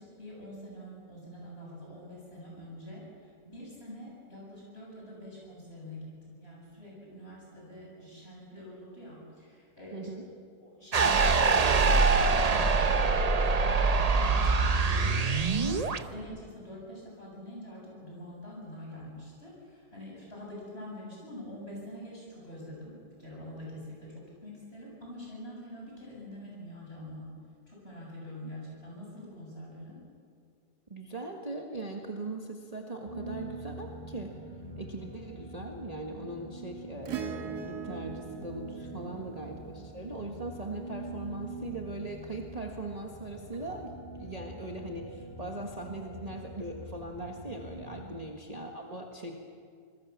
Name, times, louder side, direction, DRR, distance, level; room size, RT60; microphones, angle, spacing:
voice 1, 0.0-10.3 10.6-27.3 27.7-30.0 38.8-39.1 47.8-48.1, left 1 dB, 35° left, -3 dB, 8.4 m, -45 dB
voice 2, 9.9-10.2 30.9-34.4 34.8-49.3, right 2 dB, 25° right, 1 dB, 1.7 m, -40 dB
sound 1, 10.9-16.0, right 4 dB, 40° right, 0.6 m, -24 dB
sound 2, 33.1-48.0, right 1 dB, 15° left, 7.2 m, -44 dB
Acoustic guitar / Strum, 37.1-41.7 43.5-43.6, right 8 dB, 75° right, 1.8 m, -42 dB
26.0 x 21.0 x 7.4 m, 2.2 s
omnidirectional pair, 1.8 m